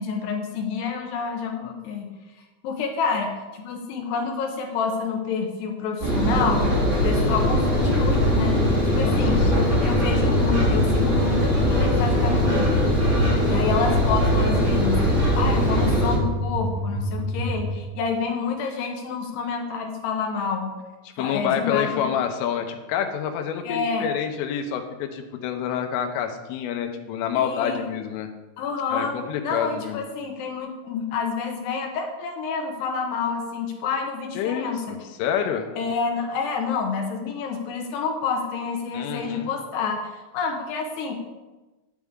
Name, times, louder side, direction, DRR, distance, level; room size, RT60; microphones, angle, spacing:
voice 1, 0.0-2.1 2.6-6.7 7.0-8.6 8.9-9.5 9.8-12.8 13.4-20.8 21.2-22.1 23.6-24.1 27.4-27.8 28.6-29.2 29.4-35.0 35.8-41.1, left 5 dB, 70° left, 2 dB, 2.8 m, -28 dB
Engine, 6.0-16.2, equal, 75° right, 0.6 m, -21 dB
sound 1, 7.3-17.7, equal, 55° right, 4.1 m, -28 dB
voice 2, 9.0-9.8 13.2-13.7 21.1-28.3 28.9-30.0 34.4-35.7 38.9-39.5, left 8 dB, 90° left, 5 dB, 3.5 m, -28 dB
10.0 x 9.4 x 3.7 m, 1.1 s
omnidirectional pair, 5.6 m